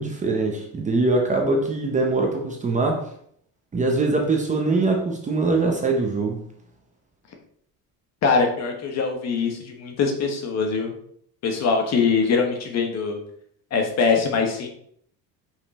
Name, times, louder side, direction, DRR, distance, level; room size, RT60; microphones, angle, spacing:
voice 1, 0.0-3.0 3.7-6.4, right 3 dB, 20° right, 2 dB, 0.8 m, -22 dB
voice 2, 8.2-10.9 11.4-13.2 13.7-14.7, left 5 dB, 45° left, 2 dB, 1.3 m, -22 dB
5.5 x 5.3 x 4.2 m, 0.66 s
cardioid pair, 170°, 38 cm